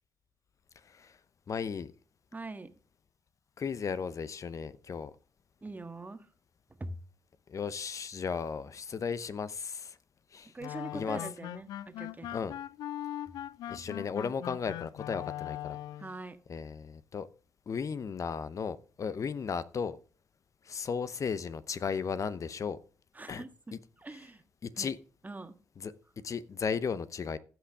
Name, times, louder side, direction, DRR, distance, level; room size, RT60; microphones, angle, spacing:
voice 1, 1.5-1.9 3.6-5.1 7.5-10.0 10.3-10.5 10.9-11.2 12.3-12.6 13.7-15.8 16.5-17.3 17.7-20.0 20.7-22.8 23.3-23.4 23.7-23.8 24.6-25.0 25.8-25.9 26.2-27.4, left 6 dB, 50° left, 0.8 m, -35 dB
voice 2, 2.3-2.7 5.6-6.3 6.8-7.0 10.5-12.3 16.0-16.4 23.1-24.4 24.8-24.9 25.2-25.5, right 2 dB, 25° right, 1.6 m, -43 dB
sound 1, 10.6-16.1, left 13 dB, 70° left, 0.3 m, -40 dB
15.5 x 6.0 x 3.6 m
hypercardioid pair, 50°, 7 cm